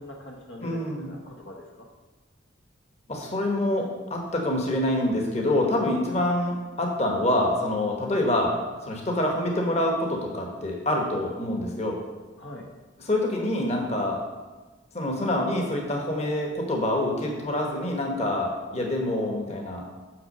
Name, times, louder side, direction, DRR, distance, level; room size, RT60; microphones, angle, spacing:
voice 1, 0.0-1.9 6.1-6.3 12.4-12.7, left 1 dB, 65° left, -1 dB, 1.0 m, -43 dB
voice 2, 0.6-1.1 3.1-12.0 13.0-14.2 14.9-19.8, left 1 dB, 35° left, 0 dB, 1.2 m, -26 dB
5.9 x 5.8 x 6.5 m, 1.2 s
head